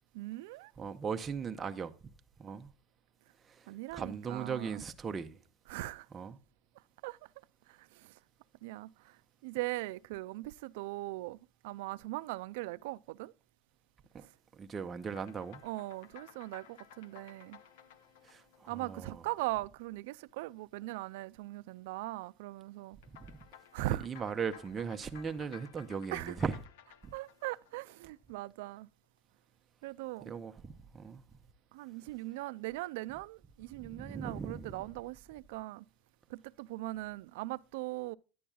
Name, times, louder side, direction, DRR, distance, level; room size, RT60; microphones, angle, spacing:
voice 1, 0.1-0.7 3.7-4.8 5.7-6.1 7.0-7.2 7.7-8.1 8.6-9.2 9.4-11.4 11.6-13.3 15.6-17.6 18.7-23.0 23.7-24.0 26.1-26.3 27.1-28.9 29.8-30.3 31.7-35.8 36.3-38.2, right 19 dB, 80° right, 0.3 m, -40 dB
voice 2, 0.8-2.1 2.4-2.7 3.4-5.4 6.1-6.4 14.1-14.2 14.5-15.6 18.2-19.2 23.1-23.4 23.8-26.6 27.0-27.1 30.2-31.2 33.7-34.8, right 6 dB, 20° right, 0.6 m, -39 dB
sound 1, 15.0-19.7 23.0-28.4, left 9 dB, 90° left, 0.7 m, -57 dB
10.0 x 8.5 x 2.3 m
supercardioid pair, 150°, 0 cm